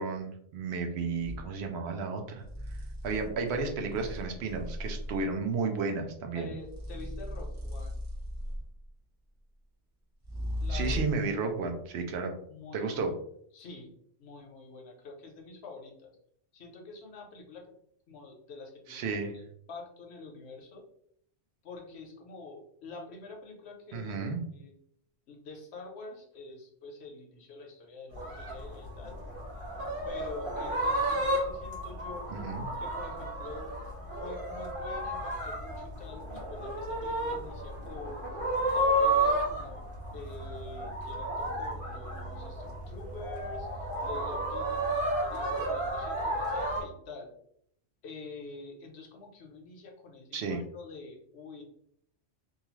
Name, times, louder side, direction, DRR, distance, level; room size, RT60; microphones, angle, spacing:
voice 1, 0.0-2.4 3.0-6.5 10.7-12.3 12.7-13.1 18.9-19.4 23.9-24.4 32.3-32.7 50.3-50.6, right 4 dB, 70° right, 4 dB, 0.8 m, -32 dB
sound 1, 1.2-1.5 2.4-5.4 6.6-8.9 10.2-11.3, left 1 dB, 25° right, 0.4 m, -37 dB
voice 2, 6.3-7.9 10.6-11.1 12.4-13.2 13.5-13.9 14.2-16.1 16.5-17.6 18.1-19.3 19.7-20.8 21.6-24.7 25.3-29.2 30.1-32.3 32.8-33.7 34.2-36.2 36.5-38.2 38.7-39.9 40.1-47.3 48.0-51.6, left 3 dB, 70° left, 1 dB, 0.9 m, -46 dB
sound 2, 28.1-46.8, right 1 dB, 50° right, 1.3 m, -32 dB
2.8 x 2.3 x 3.0 m, 0.68 s
omnidirectional pair, 1.2 m